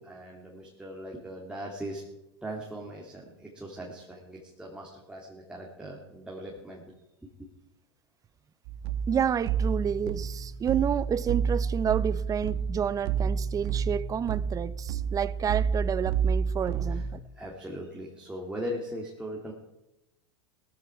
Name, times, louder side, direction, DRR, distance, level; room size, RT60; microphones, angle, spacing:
voice 1, 0.0-2.0 2.4-6.8 7.4-7.5 16.9-17.0 17.4-19.5, equal, 5° right, 2.7 m, -39 dB
sound 1, 8.6-17.1, right 6 dB, 60° right, 1.4 m, -30 dB
voice 2, 9.1-17.2, right 8 dB, 25° right, 0.7 m, -29 dB
17.5 x 13.5 x 4.7 m
hypercardioid pair, 110°, 15 cm